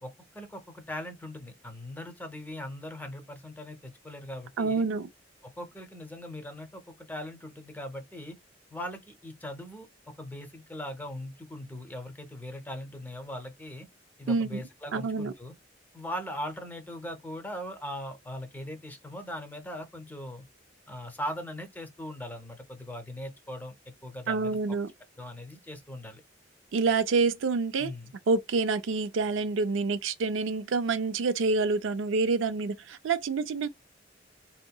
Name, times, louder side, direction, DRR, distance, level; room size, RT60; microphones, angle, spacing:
voice 1, 0.0-4.8 5.4-8.4 8.7-13.9 14.2-15.5 15.9-20.5 20.9-24.6 25.2-26.2 27.8-28.1, left 1 dB, 10° left, 0.6 m, -40 dB
voice 2, 4.6-5.1 14.3-14.6 14.9-15.3 24.3-24.9 26.7-27.9 28.3-33.7, right 4 dB, 80° right, 0.4 m, -27 dB
3.7 x 2.8 x 2.2 m
head